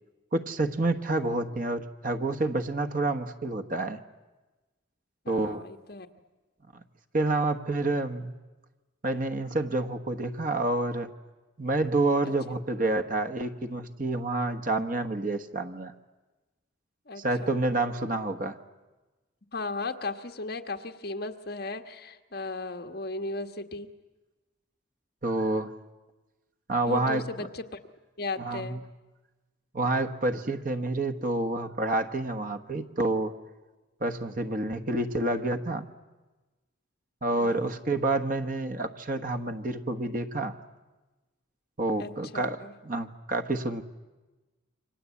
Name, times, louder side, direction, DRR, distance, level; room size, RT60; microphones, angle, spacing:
voice 1, 0.3-4.0 5.3-5.6 7.1-8.3 9.0-11.1 11.6-15.9 17.2-18.6 25.2-25.7 26.7-27.2 28.4-28.8 29.7-33.3 34.0-35.9 37.2-40.5 41.8-43.8, right 2 dB, 40° right, 8 dB, 1.3 m, -28 dB
voice 2, 5.2-6.1 12.2-12.3 17.1-17.6 19.5-23.9 26.9-27.8 28.2-28.8 37.4-37.7 42.0-42.7, left 3 dB, 50° left, 6 dB, 1.5 m, -36 dB
28.5 x 24.5 x 8.4 m, 1.2 s
head